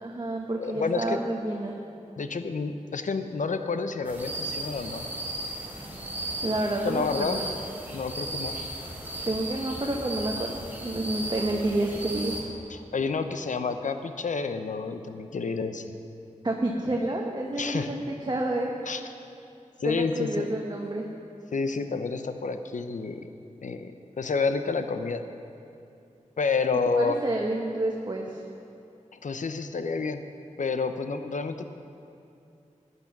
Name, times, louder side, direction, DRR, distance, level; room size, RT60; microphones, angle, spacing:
voice 1, 0.0-1.7 6.4-7.4 9.3-10.5 10.8-12.4 16.4-18.7 19.8-21.0 26.9-28.3, right 1 dB, 35° right, 0 dB, 1.1 m, -29 dB
voice 2, 0.6-1.2 2.2-5.1 6.8-7.4 7.9-8.6 12.7-15.8 17.6-17.9 18.9-19.1 19.8-20.5 21.5-23.3 23.6-23.9 24.2-25.2 26.4-27.2 29.1-30.2 30.6-31.6, left 4 dB, 75° left, 8 dB, 0.7 m, -29 dB
sound 1, 4.0-12.4, right 1 dB, 15° right, 3.8 m, -36 dB
13.5 x 9.6 x 5.9 m, 2.7 s
wide cardioid pair, 60°, 13 cm